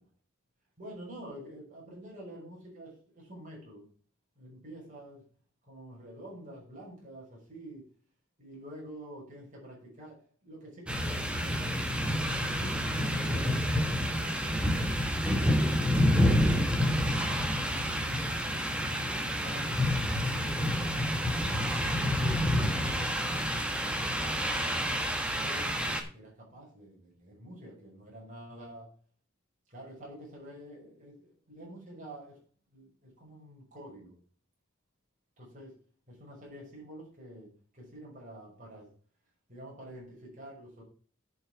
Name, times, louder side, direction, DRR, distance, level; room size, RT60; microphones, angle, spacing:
voice 1, 0.8-3.8 4.4-5.2 5.7-7.8 8.4-10.2 10.4-13.8 14.1-14.6 15.3-16.5 17.0-18.7 19.1-21.5 22.1-24.1 24.6-28.8 29.7-31.1 31.5-32.3 32.7-34.1 35.4-35.7 36.1-37.5 37.8-38.9 39.5-40.8, right 1 dB, 40° right, -3 dB, 6.1 m, -48 dB
sound 1, 10.9-26.0, equal, 5° right, 1.4 m, -28 dB
10.5 x 6.5 x 4.8 m, 0.42 s
head